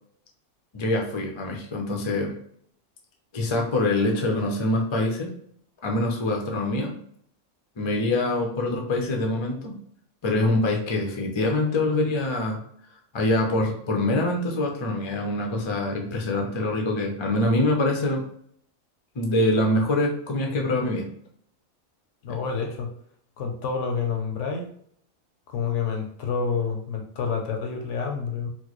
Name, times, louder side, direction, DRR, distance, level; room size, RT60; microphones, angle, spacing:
voice 1, 0.7-2.3 3.3-5.3 5.8-7.0 7.8-9.8 10.2-12.6 13.1-18.2 19.2-21.1, left 2 dB, 40° left, 1 dB, 0.4 m, -24 dB
voice 2, 22.2-22.9 23.4-24.7 25.5-28.5, left 5 dB, 65° left, 3 dB, 0.9 m, -28 dB
4.4 x 2.0 x 3.0 m, 0.64 s
omnidirectional pair, 1.4 m